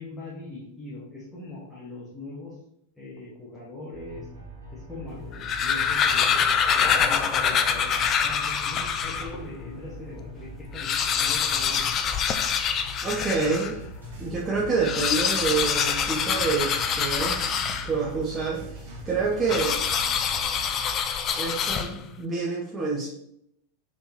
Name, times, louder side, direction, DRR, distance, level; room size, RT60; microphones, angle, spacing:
voice 1, 0.0-2.6 3.0-4.3 4.7-12.0, left 2 dB, 10° left, -8 dB, 1.3 m, -41 dB
sound 1, 3.9-21.0, right 1 dB, 85° left, 1.1 m, -43 dB
sound 2, 5.2-9.4 9.9-10.0 10.2-10.3 10.6-13.8 14.7-18.2 19.5-22.2, left 7 dB, 30° left, 0.3 m, -25 dB
voice 2, 13.0-13.8 14.2-19.8 21.3-23.1, right 4 dB, 15° right, -5 dB, 0.8 m, -28 dB
sound 3, 13.8-20.7, right 2 dB, 50° right, 1.0 m, -45 dB
4.3 x 3.5 x 2.9 m, 0.75 s
figure-of-eight pair, 90°, 0 cm